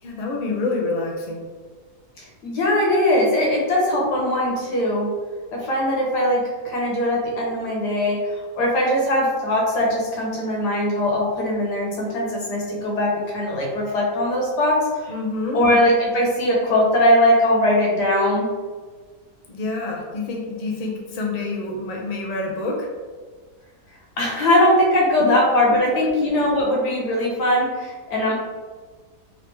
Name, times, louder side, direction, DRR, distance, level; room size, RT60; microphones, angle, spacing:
voice 1, 0.0-1.4 15.1-15.6 19.5-22.9, left 3 dB, 50° left, -1 dB, 0.5 m, -27 dB
voice 2, 2.2-5.1 5.5-15.1 15.5-18.5 24.2-28.3, left 1 dB, 85° left, -2 dB, 1.6 m, -20 dB
3.7 x 3.0 x 3.4 m, 1.4 s
omnidirectional pair, 1.7 m